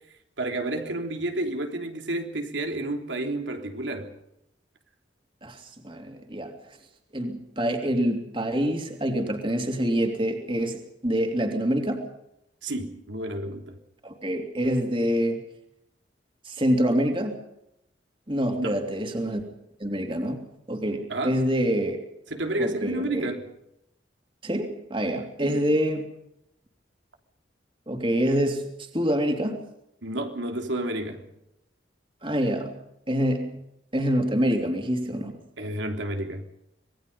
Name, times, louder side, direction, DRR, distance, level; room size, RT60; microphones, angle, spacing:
voice 1, 0.4-4.1 12.6-13.8 18.6-18.8 21.1-21.4 22.3-23.5 25.4-25.6 30.0-31.2 35.6-36.4, right 1 dB, 85° right, 3.4 m, -30 dB
voice 2, 5.4-6.5 7.1-12.1 14.0-15.4 16.4-17.4 18.3-19.4 19.8-22.0 22.6-23.3 24.4-26.1 27.9-28.7 28.9-29.7 32.2-32.7 33.1-33.6 33.9-35.3, equal, 30° right, 3.0 m, -26 dB
26.0 x 20.5 x 5.4 m
head